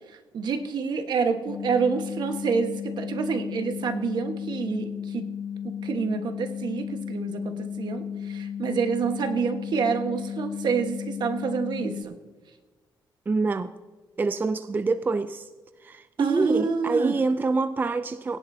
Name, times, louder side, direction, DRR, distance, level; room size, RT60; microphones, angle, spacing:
voice 1, 0.1-5.2 5.6-12.1 16.2-17.2, right 5 dB, 65° right, 6 dB, 1.4 m, -28 dB
sound 1, 1.5-12.0, left 8 dB, 50° left, 0.5 m, -34 dB
voice 2, 13.3-13.7 14.2-15.5 15.8-18.4, right 3 dB, 25° right, 10 dB, 0.4 m, -26 dB
20.5 x 10.5 x 2.8 m, 1.3 s
cardioid pair, 110°, 8 cm